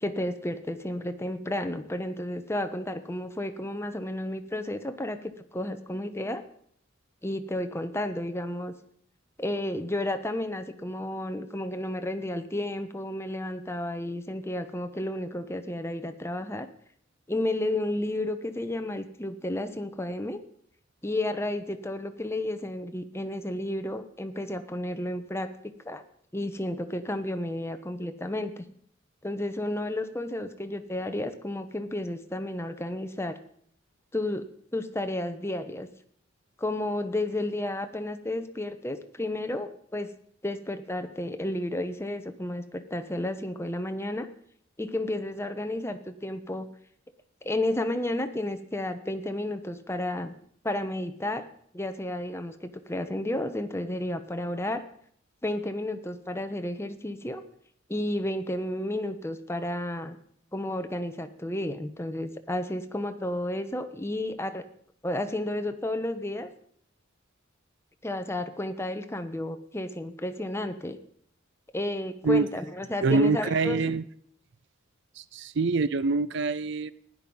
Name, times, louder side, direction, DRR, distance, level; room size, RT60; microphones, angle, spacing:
voice 1, 0.0-5.2 5.5-6.4 7.2-8.7 9.4-16.7 17.3-20.4 21.0-25.5 25.8-26.0 26.3-28.6 29.2-33.4 34.1-34.4 34.7-35.9 36.6-40.1 40.4-44.3 44.8-46.7 47.4-50.4 50.6-51.5 51.7-54.8 55.4-57.4 57.9-60.2 60.5-64.6 65.0-66.5 68.0-71.0 71.7-73.9, left 1 dB, 15° left, 8 dB, 1.0 m, -32 dB
voice 2, 73.0-74.0 75.2-76.9, right 4 dB, 65° right, 17 dB, 0.5 m, -25 dB
15.5 x 10.5 x 5.5 m, 0.64 s
head